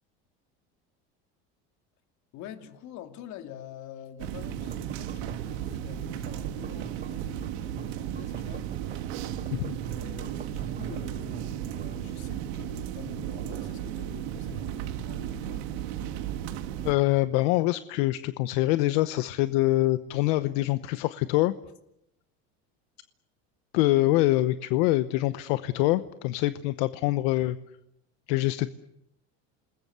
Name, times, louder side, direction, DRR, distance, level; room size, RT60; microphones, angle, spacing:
voice 1, 2.3-9.0 9.4-15.6, left 10 dB, 60° left, 7 dB, 2.7 m, -46 dB
sound 1, 4.2-16.9, right 10 dB, 85° right, 2.1 m, -35 dB
sound 2, 4.5-12.1, right 9 dB, 25° right, 1.2 m, -45 dB
voice 2, 16.8-21.5 23.7-27.6 28.3-28.7, left 17 dB, 80° left, 13 dB, 0.9 m, -25 dB
27.5 x 20.5 x 8.1 m, 0.83 s
supercardioid pair, 120°, 32 cm